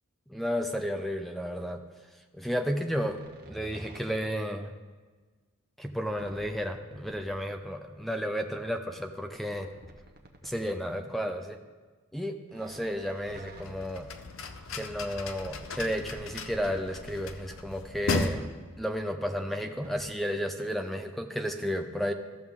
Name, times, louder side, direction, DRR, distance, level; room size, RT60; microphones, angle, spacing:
voice 1, 0.3-1.8 2.3-3.2 3.5-4.7 5.8-9.7 10.4-11.6 12.1-14.1 14.7-18.5 18.8-22.1, equal, ahead, 5 dB, 0.4 m, -32 dB
sound 1, 2.8-4.4 6.1-7.4 9.3-10.8 12.5-14.4 15.7-17.4 19.0-20.0, right 1 dB, 45° right, 1.0 m, -51 dB
sound 2, 13.3-18.3, left 3 dB, 65° left, 0.6 m, -36 dB
14.5 x 6.3 x 3.6 m, 1.4 s
head